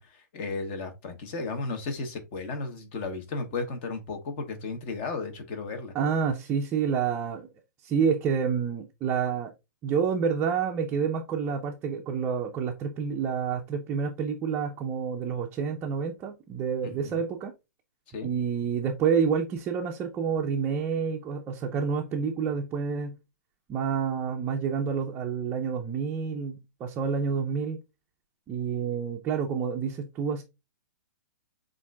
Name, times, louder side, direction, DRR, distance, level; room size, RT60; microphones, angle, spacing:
voice 1, 0.0-5.9 16.8-17.2 18.1-18.3, left 3 dB, 35° left, 1.1 m, -34 dB
voice 2, 5.9-7.5 7.8-9.5 9.8-17.5 18.2-23.2 23.7-27.8 28.5-30.4, right 6 dB, 20° right, 0.5 m, -28 dB
7.1 x 2.6 x 2.3 m
hypercardioid pair, 140°, 10 cm